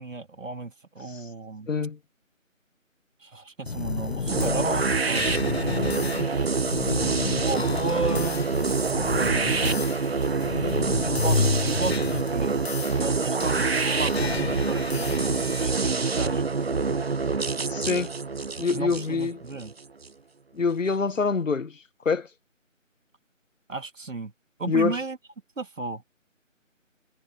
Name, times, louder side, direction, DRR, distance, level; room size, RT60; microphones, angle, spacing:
voice 1, 0.0-1.7 3.2-6.3 7.3-9.9 11.0-16.9 18.7-19.7 23.7-24.3 24.6-25.2 25.6-26.0, right 3 dB, 70° right, 2.7 m, -34 dB
voice 2, 1.7-2.0 6.2-6.3 17.7-18.1 18.6-19.4 20.5-21.8 22.0-22.3 24.7-25.0, left 5 dB, 70° left, 1.3 m, -25 dB
sound 1, 3.7-15.7, left 4 dB, 50° left, 0.9 m, -31 dB
sound 2, 4.3-20.1, right 4 dB, 50° right, 0.7 m, -26 dB
figure-of-eight pair, 170°, 40 cm